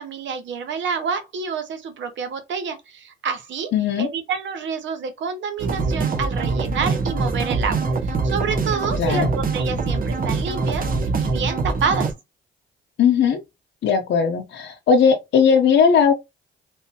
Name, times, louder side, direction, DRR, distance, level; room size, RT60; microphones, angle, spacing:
voice 1, 0.0-3.7 4.0-12.1, right 6 dB, 70° right, 1.0 m, -28 dB
voice 2, 3.7-4.1 9.0-9.3 13.0-13.4 13.8-16.1, left 6 dB, 65° left, 0.8 m, -18 dB
sound 1, 5.6-12.1, right 3 dB, 45° right, 0.8 m, -24 dB
3.3 x 2.7 x 2.8 m
cardioid pair, 90°, 20 cm